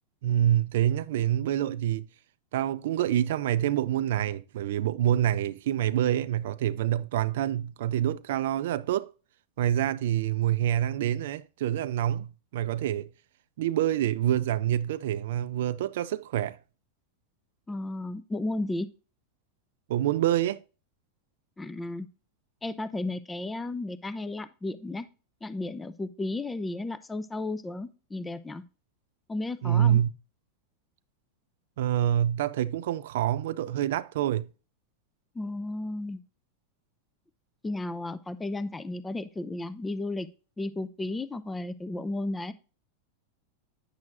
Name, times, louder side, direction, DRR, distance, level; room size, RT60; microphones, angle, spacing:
voice 1, 0.2-2.1 2.5-9.1 9.6-13.1 13.6-16.6 19.9-20.6 29.6-30.1 31.8-34.5, right 11 dB, 70° right, 0.4 m, -26 dB
voice 2, 17.7-18.9 21.6-22.1 22.6-25.0 25.4-28.6 29.3-30.0 35.3-36.2 37.6-40.3 40.6-42.5, left 2 dB, 10° left, 0.5 m, -33 dB
9.6 x 6.2 x 2.5 m
hypercardioid pair, 110°, 0 cm